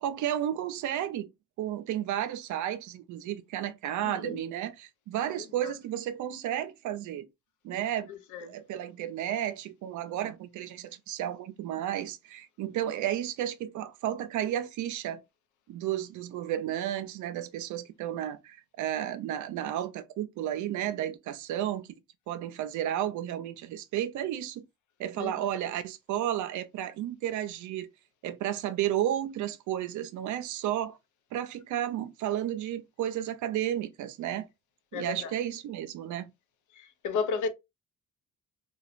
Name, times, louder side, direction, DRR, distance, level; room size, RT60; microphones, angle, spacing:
voice 1, 0.0-1.3 1.6-7.3 7.6-8.1 8.4-15.2 15.7-21.9 22.3-24.6 25.0-27.9 28.2-31.0 31.3-34.5 34.9-36.3, right 11 dB, 75° right, 0.5 m, -32 dB
voice 2, 4.0-4.4 5.4-5.7 8.1-8.5 25.2-25.3 34.9-35.3 36.7-37.5, left 5 dB, 75° left, 0.6 m, -34 dB
3.0 x 2.3 x 2.4 m
cardioid pair, 90°, 30 cm